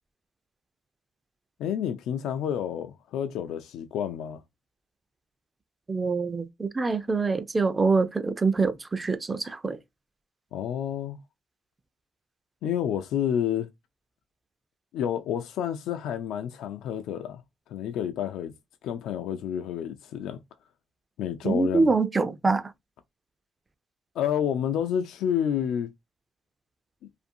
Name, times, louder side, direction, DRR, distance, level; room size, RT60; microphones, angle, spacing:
voice 1, 1.6-4.4 10.5-11.2 12.6-13.7 14.9-17.4 17.7-18.5 18.8-20.4 21.2-21.9 24.2-25.9, left 9 dB, 85° left, 0.3 m, -29 dB
voice 2, 5.9-9.8 21.4-22.6, right 4 dB, 25° right, 0.4 m, -25 dB
2.5 x 2.5 x 2.6 m
cardioid pair, 90°, 0 cm